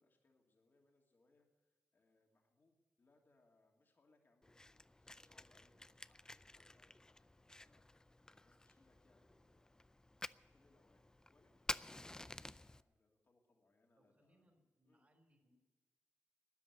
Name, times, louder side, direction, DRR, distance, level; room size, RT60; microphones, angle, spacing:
voice 1, 0.0-9.9 10.5-11.0 11.3-14.4 14.8-15.1, left 2 dB, 45° left, 1 dB, 2.8 m, -76 dB
Fire, 4.4-12.8, left 2 dB, 15° left, 0.4 m, -51 dB
voice 2, 14.0-15.5, equal, 30° right, 3 dB, 3.2 m, -74 dB
13.0 x 10.0 x 9.8 m, 1.3 s
cardioid pair, 85°, 5 cm